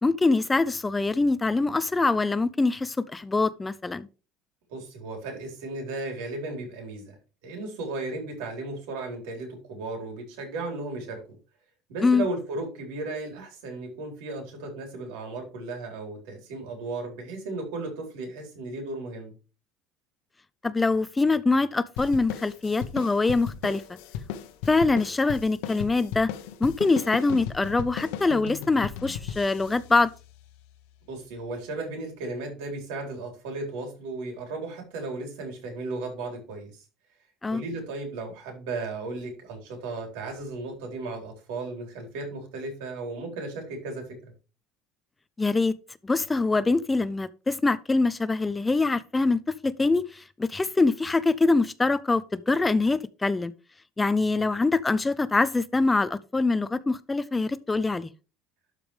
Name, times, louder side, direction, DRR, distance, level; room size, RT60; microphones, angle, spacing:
voice 1, 0.0-4.1 12.0-12.2 20.6-23.8 24.7-26.3 26.6-30.1 37.4-37.6 45.4-45.7 46.0-53.5 54.0-58.1, left 3 dB, 10° left, 0.3 m, -24 dB
voice 2, 4.7-7.2 7.4-11.2 11.9-19.3 31.1-36.8 37.5-44.3 54.2-54.5, right 2 dB, 85° right, 4.1 m, -35 dB
sound 1, 22.0-30.8, left 9 dB, 80° left, 1.0 m, -37 dB
12.0 x 5.0 x 3.4 m
cardioid pair, 175°, 0 cm